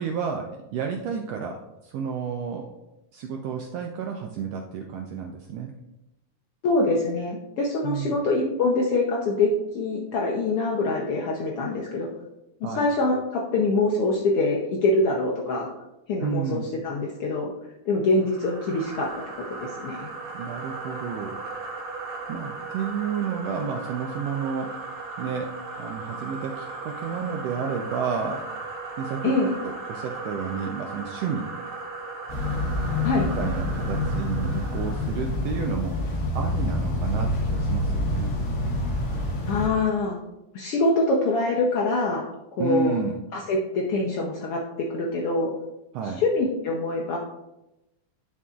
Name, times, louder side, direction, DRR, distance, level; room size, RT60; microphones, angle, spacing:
voice 1, 0.0-1.6 1.8-2.7 3.1-5.7 7.8-8.2 12.6-12.9 16.2-16.7 20.3-21.4 22.3-24.7 25.2-25.5 25.8-28.4 29.0-29.3 29.6-31.5 33.4-38.3 42.6-43.1 45.9-46.2, right 6 dB, 80° right, 2 dB, 1.5 m, -31 dB
voice 2, 6.6-12.1 12.7-15.7 16.1-17.5 17.8-19.1 19.5-20.1 29.2-29.5 33.0-33.3 39.5-40.2 40.5-42.2 42.6-43.0 43.3-45.5 46.0-47.2, left 2 dB, 75° left, -2 dB, 1.3 m, -24 dB
sound 1, 18.2-35.2, right 3 dB, 60° right, 1.5 m, -37 dB
sound 2, 32.3-39.7, left 1 dB, 55° left, 1.2 m, -27 dB
11.0 x 5.5 x 2.4 m, 0.94 s
omnidirectional pair, 3.5 m